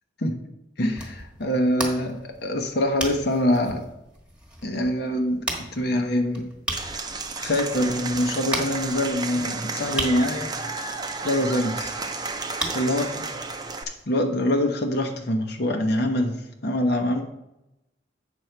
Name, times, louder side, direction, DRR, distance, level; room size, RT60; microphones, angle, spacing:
voice 1, 0.8-3.8 4.6-6.5 6.9-7.1 7.4-10.6 11.2-11.9 12.7-13.3 14.1-16.4 16.6-17.2, left 1 dB, 60° left, 4 dB, 0.9 m, -24 dB
sound 1, 0.8-14.0, right 1 dB, 5° right, 1.3 m, -37 dB
Applause / Crowd, 6.7-13.8, right 3 dB, 20° right, 0.6 m, -32 dB
8.0 x 6.2 x 4.5 m, 0.90 s
head